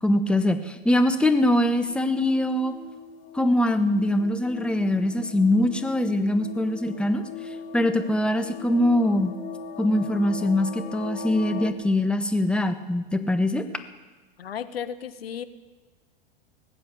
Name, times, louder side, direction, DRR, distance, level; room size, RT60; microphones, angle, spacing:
voice 1, 0.0-2.8 3.3-7.2 7.7-9.3 9.8-13.7, left 1 dB, 5° left, 9 dB, 0.9 m, -23 dB
sound 1, 1.8-11.7, left 5 dB, 45° left, 1.8 m, -40 dB
voice 2, 14.4-15.4, left 8 dB, 90° left, 14 dB, 0.8 m, -34 dB
18.5 x 7.9 x 8.9 m, 1.3 s
hypercardioid pair, 105°, 29 cm